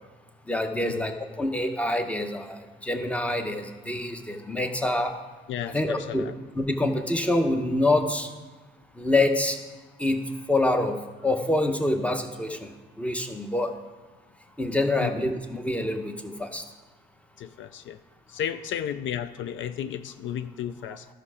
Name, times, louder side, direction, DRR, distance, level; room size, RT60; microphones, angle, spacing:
voice 1, 0.5-5.2 5.7-6.2 6.5-8.3 9.0-9.6 10.0-10.2 10.5-11.0 11.2-12.7 13.0-13.7 14.6-16.6, left 2 dB, 5° left, 6 dB, 0.9 m, -26 dB
voice 2, 5.5-6.4 15.0-15.1 17.4-18.0 18.3-21.1, left 9 dB, 75° left, 12 dB, 0.4 m, -33 dB
12.0 x 5.8 x 4.9 m, 1.3 s
cardioid pair, 90°, 20 cm